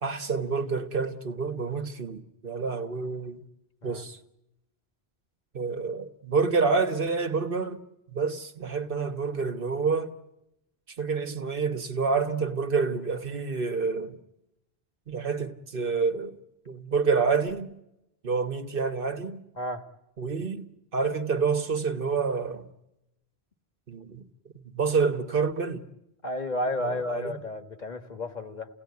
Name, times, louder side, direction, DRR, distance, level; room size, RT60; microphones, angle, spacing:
voice 1, 0.0-3.4 3.8-4.2 5.5-7.8 8.1-10.1 10.9-14.2 15.1-16.4 16.7-17.7 18.2-19.4 20.2-22.7 23.9-24.3 24.6-25.9 26.8-27.4, right 5 dB, 60° right, 1.4 m, -28 dB
voice 2, 26.2-28.7, left 1 dB, 45° left, 1.5 m, -32 dB
29.5 x 17.0 x 9.5 m
omnidirectional pair, 1.1 m